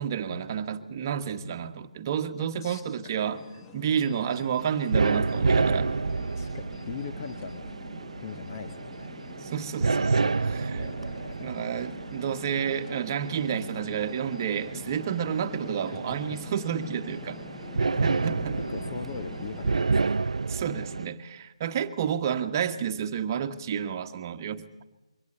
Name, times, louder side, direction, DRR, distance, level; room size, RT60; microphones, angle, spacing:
voice 1, 0.0-3.4 3.7-5.9 9.4-10.8 11.4-17.4 18.0-18.6 20.5-24.6, right 8 dB, 30° right, 8 dB, 1.3 m, -30 dB
voice 2, 2.5-3.3 5.6-5.9 6.3-7.7 8.2-9.1 10.6-12.1 15.9-16.5 18.7-20.3, left 6 dB, 35° left, 7 dB, 1.2 m, -42 dB
sound 1, 3.1-19.9, left 7 dB, 15° left, 1.0 m, -46 dB
sound 2, 4.6-21.1, right 4 dB, 75° right, 0.7 m, -30 dB
23.0 x 18.0 x 8.3 m, 1.0 s
figure-of-eight pair, 160°, 3 cm